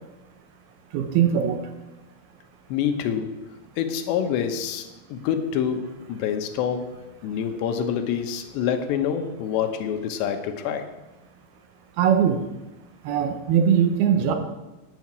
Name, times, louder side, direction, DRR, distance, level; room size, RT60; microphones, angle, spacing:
voice 1, 0.9-1.7 12.0-12.5 13.0-14.3, right 8 dB, 75° right, 7 dB, 2.6 m, -21 dB
voice 2, 2.7-3.4 3.8-10.9, left 8 dB, 80° left, 7 dB, 3.2 m, -27 dB
11.0 x 7.0 x 8.6 m, 1.0 s
omnidirectional pair, 5.0 m